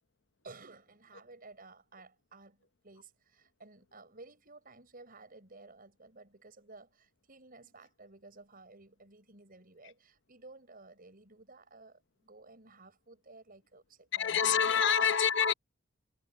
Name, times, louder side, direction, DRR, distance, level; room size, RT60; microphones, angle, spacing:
voice 1, 0.4-14.8, right 3 dB, 45° right, 7.3 m, -55 dB
voice 2, 14.1-15.5, left 7 dB, 60° left, 1.0 m, -26 dB
head